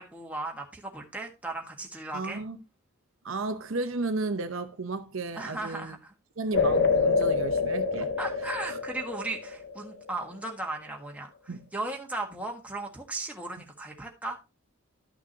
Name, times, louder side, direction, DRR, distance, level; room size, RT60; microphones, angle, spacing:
voice 1, 0.0-2.4 5.3-6.1 8.2-14.4, right 2 dB, 5° right, 1.5 m, -36 dB
voice 2, 2.1-2.6 3.2-6.0 6.4-8.1 8.7-8.8 11.5-11.6, right 3 dB, 65° right, 0.8 m, -33 dB
sound 1, 6.5-10.1, left 4 dB, 55° left, 0.8 m, -26 dB
12.0 x 6.0 x 2.9 m
head